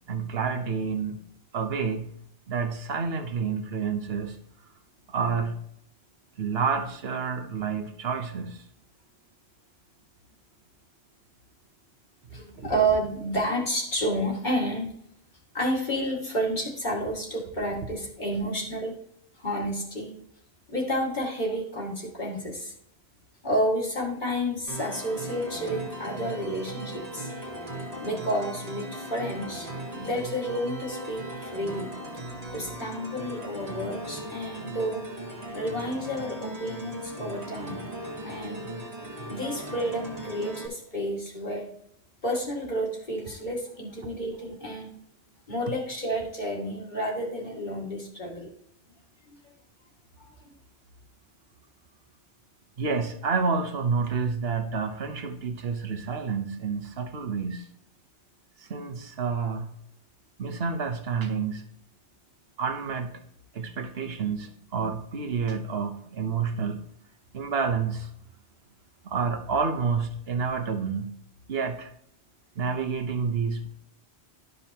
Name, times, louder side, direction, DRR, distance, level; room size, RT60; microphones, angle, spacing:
voice 1, 0.1-1.3 1.5-2.1 2.5-4.4 5.1-5.6 6.4-8.6 12.3-12.7 52.8-57.7 58.6-59.7 60.4-61.7 62.6-63.2 63.5-66.9 67.3-68.1 69.0-71.1 71.5-71.9 72.6-73.7, right 5 dB, 60° right, 1.2 m, -29 dB
voice 2, 12.3-14.9 15.5-18.9 19.4-20.1 20.7-22.7 23.4-27.3 28.0-31.9 32.5-35.0 35.5-37.8 38.2-38.6 39.3-41.7 42.2-44.9 45.5-48.5 49.3-49.4 50.2-50.3, equal, 40° left, 2.1 m, -30 dB
sound 1, 24.7-40.7, right 1 dB, 35° right, 1.6 m, -38 dB
12.0 x 5.4 x 2.9 m
omnidirectional pair, 1.2 m